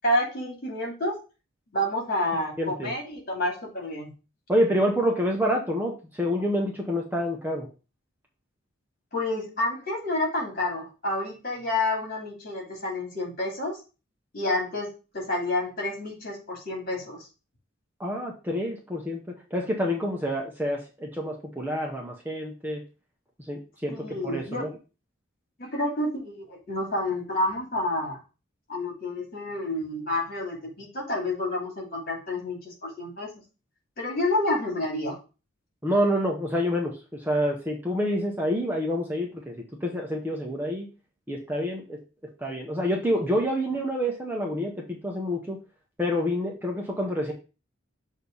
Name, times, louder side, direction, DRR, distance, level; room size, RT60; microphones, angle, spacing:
voice 1, 0.0-1.2 1.7-4.1 9.1-13.8 14.3-17.2 23.9-24.6 25.6-28.2 28.7-33.3 34.0-35.2, left 1 dB, 45° left, -1 dB, 2.5 m, -29 dB
voice 2, 2.6-2.9 4.5-7.7 18.0-19.2 19.5-22.8 23.5-24.0 24.2-24.7 35.8-40.9 41.3-42.0 42.4-45.6 46.0-47.3, equal, 10° right, 0 dB, 0.8 m, -27 dB
6.6 x 2.7 x 5.2 m, 0.32 s
head